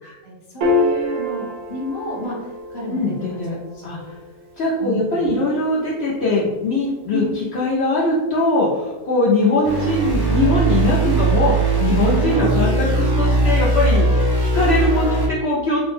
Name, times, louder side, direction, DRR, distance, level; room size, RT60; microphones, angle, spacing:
voice 1, 0.0-3.5 3.7-4.0 4.8-5.3 7.1-7.3 11.0-11.2 12.2-12.4, left 1 dB, 20° left, -6 dB, 0.8 m, -31 dB
Piano, 0.6-7.2, left 2 dB, 65° right, 0.8 m, -28 dB
voice 2, 2.9-3.6 3.8-4.0 4.6-15.8, left 2 dB, 60° left, -6 dB, 0.8 m, -21 dB
sound 1, 9.6-15.3, right 3 dB, 30° right, 0.4 m, -19 dB
3.3 x 2.1 x 3.2 m, 1.1 s
omnidirectional pair, 1.5 m